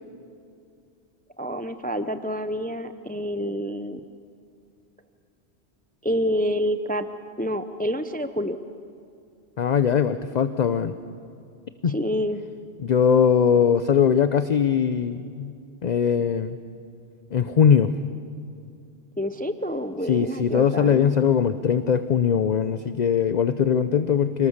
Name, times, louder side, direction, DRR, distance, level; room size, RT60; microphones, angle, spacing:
voice 1, 1.4-4.0 6.0-7.1 7.4-8.6 11.9-12.4 19.2-21.1, equal, 10° left, 10 dB, 0.6 m, -28 dB
voice 2, 9.6-10.9 11.8-12.0 12.8-15.5 15.8-16.6 17.3-17.9 20.1-24.5, left 7 dB, 45° left, 11 dB, 0.7 m, -21 dB
27.0 x 19.5 x 7.2 m, 2.5 s
omnidirectional pair, 1.1 m